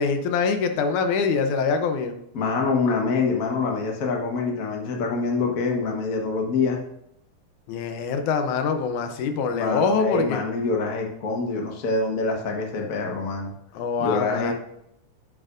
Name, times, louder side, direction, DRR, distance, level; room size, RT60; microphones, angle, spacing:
voice 1, 0.0-2.2 7.7-10.4 13.7-14.5, left 5 dB, 75° left, 7 dB, 2.2 m, -24 dB
voice 2, 2.3-6.8 9.5-13.5 14.0-14.5, left 4 dB, 55° left, 1 dB, 0.9 m, -25 dB
9.0 x 7.7 x 2.6 m, 0.77 s
omnidirectional pair, 3.6 m